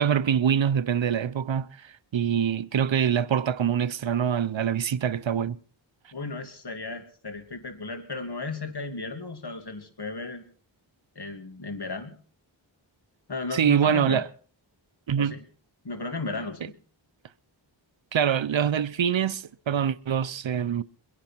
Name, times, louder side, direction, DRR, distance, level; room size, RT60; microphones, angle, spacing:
voice 1, 0.0-5.6 13.5-14.3 15.1-15.4 18.1-20.8, right 8 dB, 70° right, 0.7 m, -25 dB
voice 2, 6.1-10.4 11.2-12.2 13.3-14.2 15.2-15.4 15.8-16.7, left 3 dB, 55° left, 2.6 m, -34 dB
23.0 x 11.0 x 4.5 m
wide cardioid pair, 45°, 47 cm